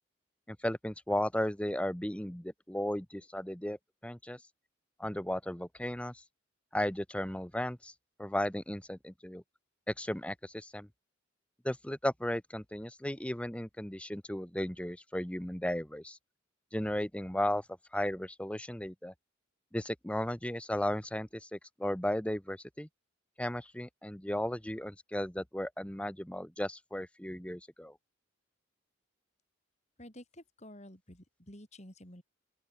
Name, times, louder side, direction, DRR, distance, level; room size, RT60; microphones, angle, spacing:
voice 1, 0.5-3.8 4.0-4.4 5.0-6.2 6.7-7.9 8.2-9.4 9.9-10.9 11.6-16.2 16.7-17.6 17.9-19.1 19.7-22.9 23.4-27.9, left 1 dB, 5° left, 1.1 m, -35 dB
voice 2, 30.0-32.2, left 1 dB, 35° left, 7.0 m, -51 dB
open air
head